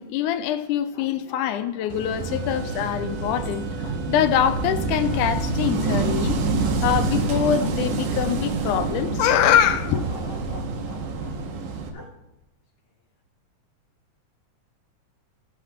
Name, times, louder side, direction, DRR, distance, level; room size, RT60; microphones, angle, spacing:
voice 1, 0.0-3.7 4.1-6.4 6.8-10.0, left 10 dB, 85° left, 2.2 m, -23 dB
sound 1, 0.7-2.1 3.8-4.0 5.1-5.3 6.6-6.8 7.6-7.8 8.6-8.8 9.6-11.4 11.9-12.1 12.4-12.5, left 2 dB, 45° left, 1.5 m, -45 dB
Wind / Waves surf, 1.9-11.9, right 3 dB, 80° right, 2.5 m, -27 dB
Wind instrument woodwind instrument, 2.2-6.0, right 8 dB, 60° right, 2.1 m, -45 dB
15.5 x 5.9 x 5.0 m
omnidirectional pair, 3.5 m